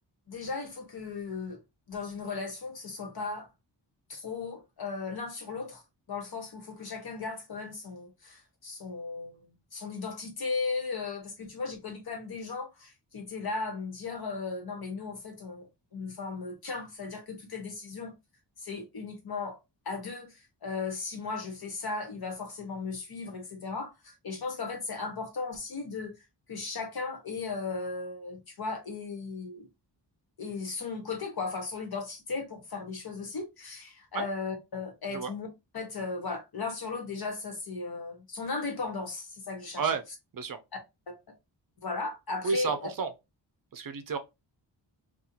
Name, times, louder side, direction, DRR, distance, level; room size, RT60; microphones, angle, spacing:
voice 1, 0.3-1.6 1.9-3.5 4.1-5.8 6.1-9.5 9.7-18.1 18.6-19.6 19.8-20.3 20.6-26.1 26.5-29.7 30.4-35.5 35.7-39.9 41.1-41.2 41.8-42.9, left 4 dB, 55° left, 1.2 m, -36 dB
voice 2, 42.4-43.1 43.7-44.2, right 5 dB, 50° right, 0.5 m, -31 dB
4.2 x 2.4 x 2.7 m
wide cardioid pair, 160°, 44 cm